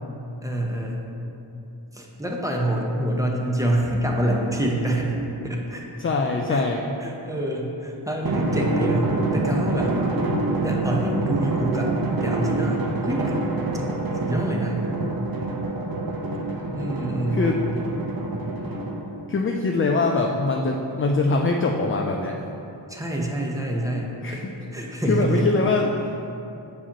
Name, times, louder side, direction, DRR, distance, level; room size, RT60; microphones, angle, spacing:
voice 1, 0.4-1.1 1.9-5.2 5.4-5.8 6.5-6.6 7.0-10.0 10.6-13.4 14.1-14.9 16.7-17.7 22.9-24.5 24.7-25.5, right 1 dB, 5° right, -1 dB, 0.8 m, -26 dB
voice 2, 6.0-6.9 17.3-17.6 19.3-22.4 24.2-24.5 25.1-26.1, left 3 dB, 30° left, 2 dB, 0.3 m, -23 dB
Drum, 8.2-19.2, right 2 dB, 45° right, 0.7 m, -26 dB
6.8 x 4.9 x 2.9 m, 2.8 s
cardioid pair, 50°, 49 cm